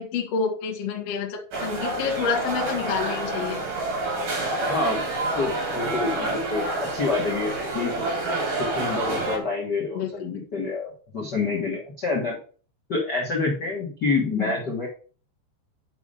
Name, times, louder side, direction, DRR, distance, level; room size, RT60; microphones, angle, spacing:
voice 1, 0.0-3.6 9.9-10.1 14.3-14.5, left 6 dB, 65° left, 2 dB, 1.6 m, -28 dB
sound 1, 1.5-9.4, right 2 dB, 50° right, 4.1 m, -28 dB
voice 2, 4.7-5.0 5.4-8.1 8.6-12.4 12.9-14.9, left 3 dB, 85° left, -1 dB, 0.9 m, -27 dB
7.2 x 5.6 x 5.0 m, 0.40 s
omnidirectional pair, 5.1 m